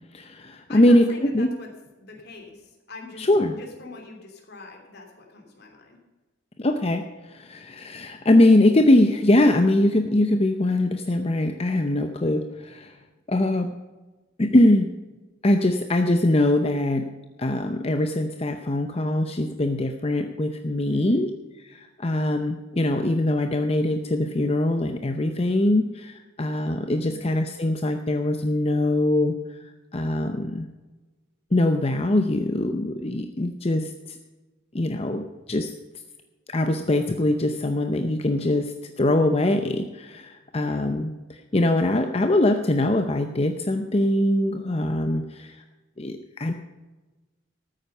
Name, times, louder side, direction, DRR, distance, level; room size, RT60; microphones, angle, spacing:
voice 1, 0.1-1.5 3.2-3.5 6.6-13.0 13.3-13.7 14.4-14.9 15.4-17.1 17.4-21.3 21.6-30.7 31.5-34.2 34.7-35.7 36.5-45.6 46.0-46.5, left 1 dB, 30° left, 7 dB, 0.7 m, -22 dB
voice 2, 0.7-1.7 2.0-6.0 20.9-21.3 27.0-27.3 40.6-40.9, left 3 dB, 50° left, 2 dB, 3.0 m, -43 dB
13.5 x 9.0 x 5.6 m, 1.2 s
head